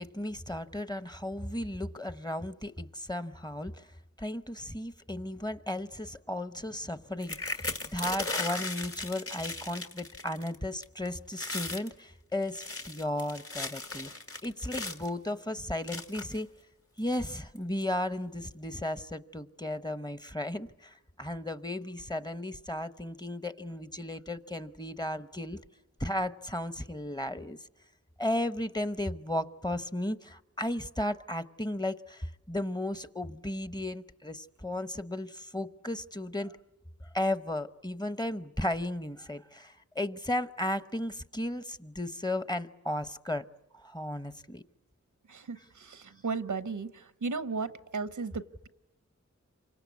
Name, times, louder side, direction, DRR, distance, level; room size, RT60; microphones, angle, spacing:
voice 1, 0.0-3.9 4.2-14.1 14.4-16.5 17.0-25.6 26.0-27.6 28.2-36.5 37.0-43.5 43.7-44.6, left 1 dB, 15° left, 13 dB, 0.9 m, -35 dB
sound 1, 7.2-10.5 10.8-11.1 11.3-11.9 12.4-15.1 15.9-16.4 17.1-17.2 17.5-17.8, left 2 dB, 50° left, 1.9 m, -37 dB
voice 2, 45.3-48.7, right 4 dB, 90° right, 13 dB, 0.9 m, -35 dB
28.0 x 25.0 x 8.4 m, 0.93 s
wide cardioid pair, 55°, 29 cm